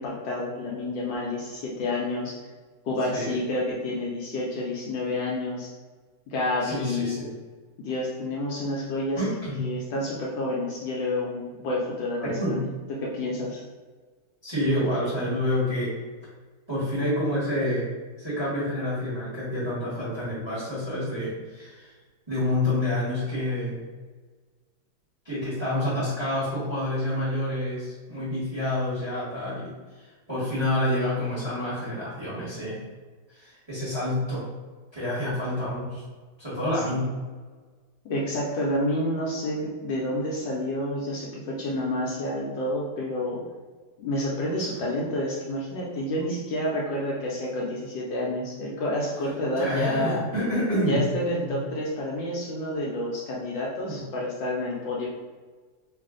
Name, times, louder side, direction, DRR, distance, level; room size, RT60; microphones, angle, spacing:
voice 1, 0.0-2.4 2.8-5.7 6.3-7.2 7.8-9.2 9.6-12.6 12.9-13.6 36.7-36.8 38.0-43.4 44.0-50.2 50.9-55.1, left 1 dB, 70° left, -4 dB, 1.2 m, -29 dB
voice 2, 6.6-7.3 9.2-9.6 12.2-12.6 14.4-15.9 16.7-17.9 18.2-21.9 22.3-23.8 25.2-29.7 30.0-32.8 33.3-34.5 34.9-36.0 36.4-37.1 49.6-51.0 51.4-51.5 53.9-54.0, left 1 dB, 20° right, -10 dB, 0.8 m, -28 dB
3.2 x 2.4 x 3.6 m, 1.4 s
omnidirectional pair, 2.3 m